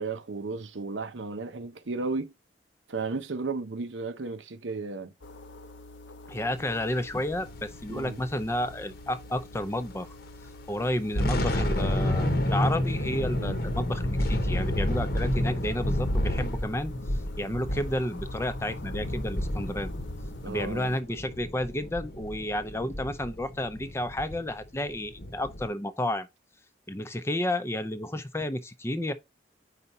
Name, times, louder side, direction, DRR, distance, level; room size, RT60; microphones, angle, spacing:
voice 1, 0.0-2.3 2.9-5.1 7.9-8.2 13.3-13.6 17.5-17.6 20.4-20.9, right 3 dB, 90° right, 0.8 m, -34 dB
sound 1, 5.2-21.0, left 2 dB, 85° left, 0.7 m, -48 dB
voice 2, 6.3-10.2 10.7-19.9 20.5-26.3 26.9-29.1, left 1 dB, 15° left, 0.5 m, -31 dB
sound 2, 7.1-9.9 10.2-10.4 10.9-25.7, left 1 dB, 55° left, 0.9 m, -30 dB
5.0 x 4.1 x 5.4 m
head